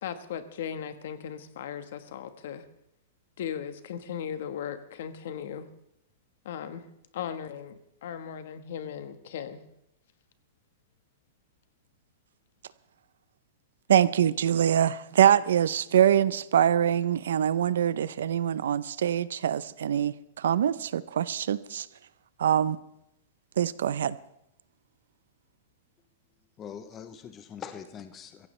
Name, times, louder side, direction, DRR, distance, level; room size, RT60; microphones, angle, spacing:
voice 1, 0.0-2.6 3.4-5.7 6.4-6.8 7.1-9.6, left 8 dB, 55° left, 10 dB, 1.3 m, -37 dB
voice 2, 13.9-21.9 22.4-22.8 23.6-24.2, right 10 dB, 80° right, 17 dB, 0.6 m, -24 dB
voice 3, 26.6-28.5, left 8 dB, 15° left, 9 dB, 0.7 m, -42 dB
23.5 x 15.5 x 3.3 m, 0.81 s
supercardioid pair, 175°, 0 cm